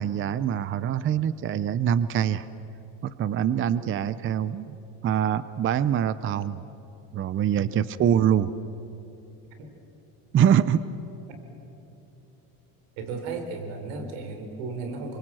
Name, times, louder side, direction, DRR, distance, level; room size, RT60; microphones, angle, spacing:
voice 1, 0.0-2.5 3.0-4.8 5.0-6.6 7.1-8.5 10.3-10.8, right 9 dB, 30° right, 15 dB, 0.6 m, -24 dB
voice 2, 7.6-7.9 9.6-9.7 13.0-15.2, right 4 dB, 85° right, 6 dB, 4.3 m, -35 dB
27.5 x 24.0 x 7.7 m, 2.9 s
cardioid pair, 135°, 44 cm